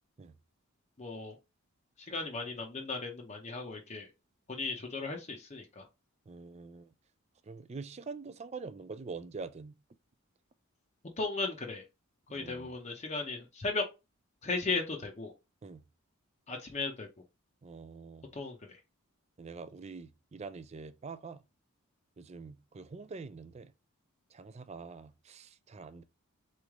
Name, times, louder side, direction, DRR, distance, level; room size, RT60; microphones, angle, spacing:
voice 1, 1.0-1.4 2.0-4.1 4.5-5.8 11.2-11.8 12.3-13.8 14.4-15.3 16.5-17.1 18.3-18.6, left 3 dB, 30° left, 0.6 m, -36 dB
voice 2, 6.3-6.9 7.4-9.7 12.3-12.7 15.6-15.8 17.6-18.3 19.4-21.4 22.2-23.7 24.3-26.0, right 4 dB, 30° right, 0.3 m, -45 dB
4.0 x 3.2 x 3.5 m
head